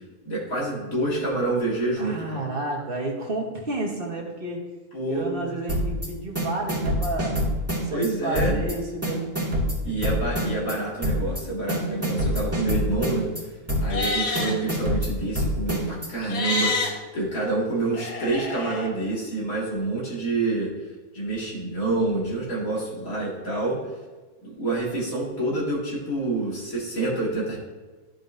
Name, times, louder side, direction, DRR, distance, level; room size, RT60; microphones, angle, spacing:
voice 1, 0.3-2.4 4.9-5.3 7.9-8.7 9.8-13.3 13.8-20.7 21.1-23.8 24.4-27.6, right 2 dB, 60° left, -5 dB, 2.6 m, -27 dB
voice 2, 2.0-4.7 5.1-7.4 7.8-9.4 9.8-10.0, right 2 dB, 40° right, -1 dB, 1.4 m, -31 dB
sound 1, 5.7-6.1 6.3-8.1 8.3-8.7 9.0-10.7 11.0-11.4 11.7-13.4 13.7-14.1 14.3-16.1, equal, 10° right, 2.0 m, -25 dB
Livestock farm animals working animals, 13.8-14.5 16.2-16.9 17.9-18.9, left 3 dB, 85° left, 1.7 m, -27 dB
13.0 x 5.3 x 2.7 m, 1.3 s
omnidirectional pair, 1.7 m